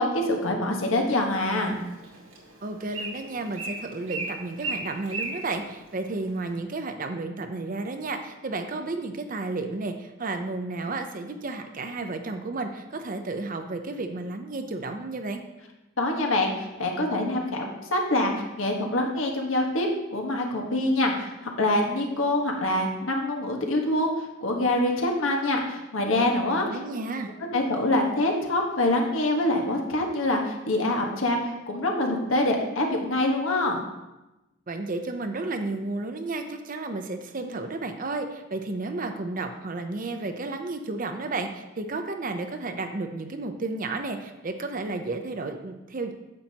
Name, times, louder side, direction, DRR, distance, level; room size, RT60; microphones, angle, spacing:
voice 1, 0.0-1.8 16.0-26.8 27.5-33.8, left 1 dB, 85° left, 1 dB, 1.4 m, -25 dB
Bird, 1.4-6.5, right 3 dB, 90° right, 1.7 m, -37 dB
voice 2, 2.6-15.4 26.6-27.3 34.7-46.1, right 3 dB, 45° right, 6 dB, 0.7 m, -32 dB
9.7 x 7.4 x 2.9 m, 1.0 s
head